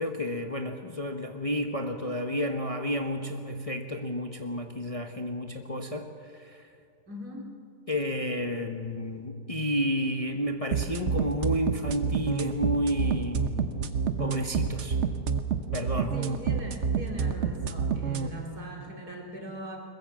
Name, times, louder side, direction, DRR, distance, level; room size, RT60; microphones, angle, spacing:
voice 1, 0.0-6.7 7.9-13.7 14.2-15.0 15.7-16.2, equal, 25° left, 4 dB, 1.0 m, -31 dB
voice 2, 7.1-7.5 16.1-19.8, equal, 70° right, 0 dB, 3.8 m, -40 dB
sound 1, 10.7-18.3, right 6 dB, 50° right, 1.2 m, -27 dB
22.0 x 21.5 x 7.3 m, 2.3 s
omnidirectional pair, 1.7 m